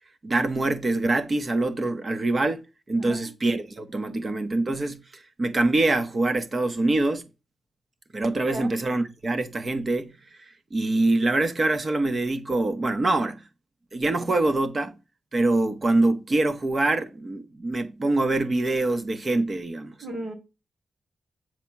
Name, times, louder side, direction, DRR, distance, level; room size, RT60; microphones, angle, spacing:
voice 1, 0.2-2.6 2.9-7.3 8.1-13.4 13.9-15.0 15.3-19.9, right 2 dB, 30° right, 0.8 m, -24 dB
voice 2, 20.0-20.3, right 1 dB, 55° right, 2.2 m, -34 dB
7.4 x 2.8 x 5.7 m
wide cardioid pair, 180°, 0 cm